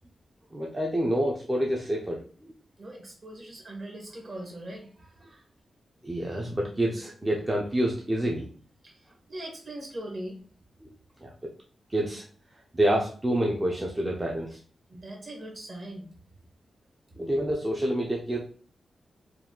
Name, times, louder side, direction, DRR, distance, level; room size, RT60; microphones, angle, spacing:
voice 1, 0.5-2.5 6.0-8.5 10.8-10.9 11.2-11.3 11.9-12.2 12.7-14.6 17.2-18.4, right 1 dB, 15° right, -1 dB, 0.5 m, -27 dB
voice 2, 2.8-5.5 8.8-10.4 14.9-16.1, right 1 dB, 35° right, 0 dB, 1.2 m, -41 dB
4.6 x 2.3 x 3.7 m, 0.43 s
wide cardioid pair, 180°, 0 cm